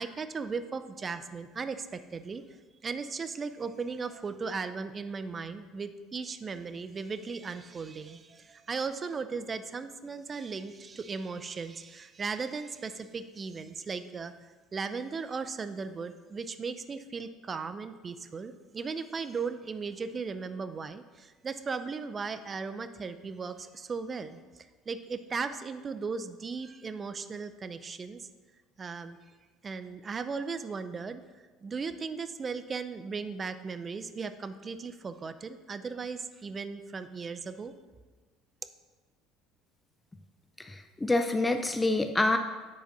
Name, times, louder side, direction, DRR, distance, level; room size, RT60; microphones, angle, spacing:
voice 1, 0.0-2.4 2.8-14.3 14.7-28.3 28.8-29.2 29.6-31.2 31.6-37.7, right 5 dB, 35° right, 11 dB, 0.6 m, -37 dB
voice 2, 40.6-42.4, left 2 dB, 15° left, 7 dB, 0.5 m, -27 dB
8.5 x 4.1 x 6.0 m, 1.3 s
hypercardioid pair, 75°, 0 cm